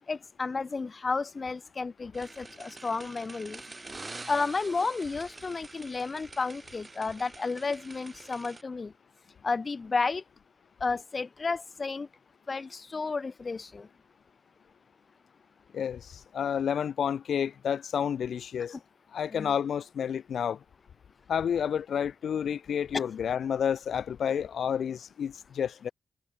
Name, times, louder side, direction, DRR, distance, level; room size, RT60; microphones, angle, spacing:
voice 1, 0.1-3.6 4.3-8.9 9.4-10.2 10.8-12.1 12.5-13.9 19.3-19.5 22.9-23.0, left 4 dB, 30° left, 6.2 m, -32 dB
sound 1, 2.1-8.6, right 3 dB, 20° right, 7.3 m, -46 dB
voice 2, 15.7-18.8 19.1-20.6 21.3-25.9, left 8 dB, 70° left, 2.2 m, -30 dB
wide cardioid pair, 120°, 0 cm